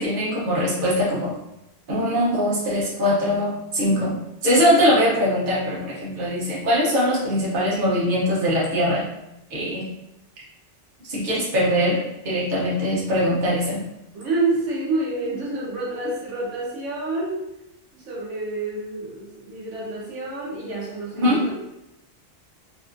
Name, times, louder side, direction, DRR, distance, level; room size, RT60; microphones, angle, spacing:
voice 1, 0.0-1.3 1.9-9.0 9.5-9.9 11.1-12.0 12.2-13.8 21.2-21.4, equal, 50° right, -6 dB, 1.0 m, -21 dB
voice 2, 14.1-17.4 17.9-21.5, right 2 dB, 80° right, -5 dB, 1.1 m, -28 dB
2.9 x 2.4 x 2.5 m, 0.87 s
omnidirectional pair, 1.2 m